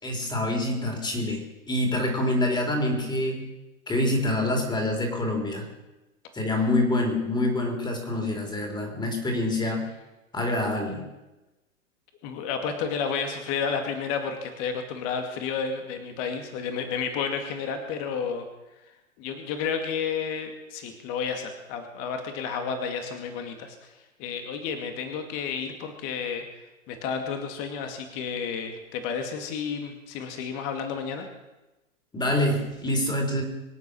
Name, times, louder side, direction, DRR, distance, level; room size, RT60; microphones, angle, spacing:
voice 1, 0.0-3.4 3.9-5.7 6.3-9.9 10.3-11.0 32.1-33.4, left 1 dB, 10° left, 2 dB, 3.9 m, -26 dB
voice 2, 12.2-18.4 19.2-31.3, left 6 dB, 35° left, 5 dB, 2.4 m, -31 dB
25.0 x 8.3 x 6.4 m, 1.0 s
hypercardioid pair, 115°, 41 cm